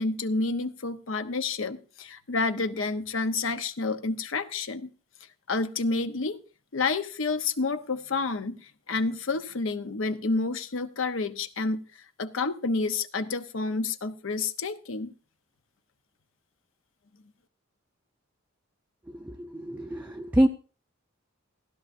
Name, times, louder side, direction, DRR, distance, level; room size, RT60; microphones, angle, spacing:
voice 1, 0.0-4.9 5.5-6.4 6.7-8.6 8.9-11.8 12.2-15.1, left 3 dB, 70° left, 10 dB, 0.8 m, -29 dB
voice 2, 19.2-20.5, right 1 dB, 10° right, 3 dB, 0.5 m, -25 dB
15.5 x 11.5 x 2.6 m, 0.36 s
head